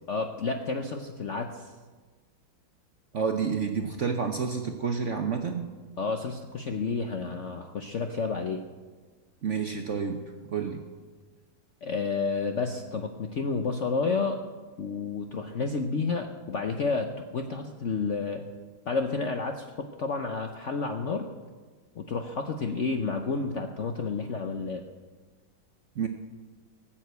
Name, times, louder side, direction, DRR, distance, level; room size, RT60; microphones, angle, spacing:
voice 1, 0.1-1.7 6.0-8.6 11.8-14.4 14.8-18.4 18.9-21.3 22.0-24.8, left 4 dB, 60° left, 5 dB, 0.8 m, -30 dB
voice 2, 3.1-5.7 9.4-10.2 10.5-10.8 26.0-26.1, right 6 dB, 55° right, 5 dB, 0.8 m, -29 dB
18.5 x 7.4 x 8.1 m, 1.4 s
omnidirectional pair, 2.1 m